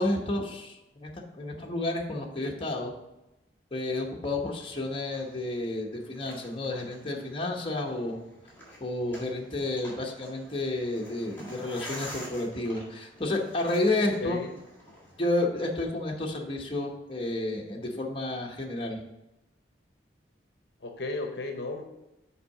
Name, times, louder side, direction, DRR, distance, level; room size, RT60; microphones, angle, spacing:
voice 1, 0.0-2.9 3.7-8.2 8.8-14.4 15.2-19.0, left 2 dB, 30° left, 0 dB, 1.0 m, -31 dB
sound 1, 4.4-15.3, equal, 10° left, 1.9 m, -48 dB
voice 2, 14.0-14.5 20.8-21.8, left 2 dB, 60° left, 4 dB, 0.8 m, -34 dB
5.8 x 4.7 x 6.5 m, 0.93 s
head